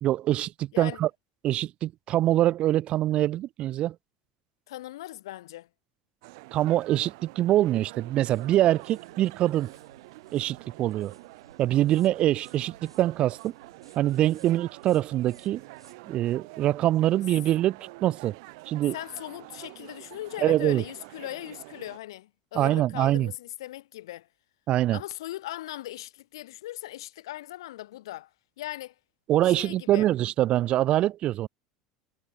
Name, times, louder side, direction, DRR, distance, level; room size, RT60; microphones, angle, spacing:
voice 1, 0.0-1.1 1.4-4.0 6.5-9.7 10.3-11.1 11.6-13.5 14.0-15.6 16.0-18.3 18.7-19.0 20.4-20.8 22.5-23.3 24.7-25.0 29.3-31.5, right 13 dB, 45° right, 0.3 m, -24 dB
voice 2, 4.7-5.7 18.9-24.3 24.9-28.3 28.6-28.9 29.5-30.1, left 15 dB, 70° left, 0.4 m, -39 dB
sound 1, 6.2-22.0, right 25 dB, 65° right, 2.0 m, -47 dB
sound 2, 8.2-16.0, right 5 dB, 90° right, 3.0 m, -57 dB
figure-of-eight pair, 75°, 3 cm